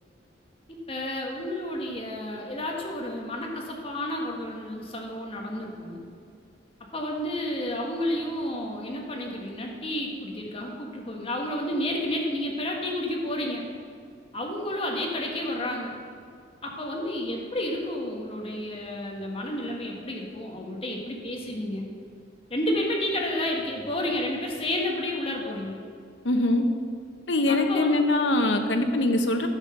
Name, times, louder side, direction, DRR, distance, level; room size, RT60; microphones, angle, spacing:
voice 1, 0.9-6.0 6.9-13.6 14.3-15.9 16.6-21.9 22.5-25.8 27.5-28.0 29.0-29.1, left 1 dB, 30° left, 0 dB, 1.5 m, -31 dB
voice 2, 26.2-26.6 27.3-29.5, left 2 dB, 85° left, 6 dB, 0.9 m, -23 dB
9.5 x 6.2 x 6.6 m, 2.2 s
head